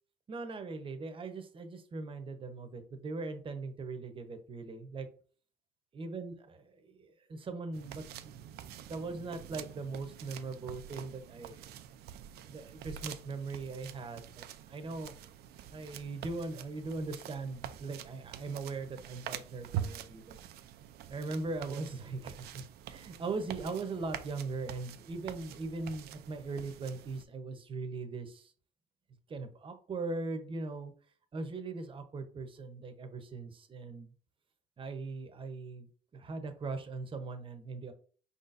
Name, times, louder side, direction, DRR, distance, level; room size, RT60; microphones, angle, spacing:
voice 1, 0.3-5.1 5.9-8.4 8.9-11.6 12.5-15.2 15.7-20.4 21.1-28.5 29.3-30.9 31.3-34.1 34.8-35.9 36.1-37.9, right 3 dB, 30° right, 8 dB, 0.8 m, -40 dB
sound 1, 7.7-27.2, right 10 dB, 70° right, 0.4 m, -46 dB
4.9 x 4.1 x 2.5 m, 0.43 s
cardioid pair, 110°, 17 cm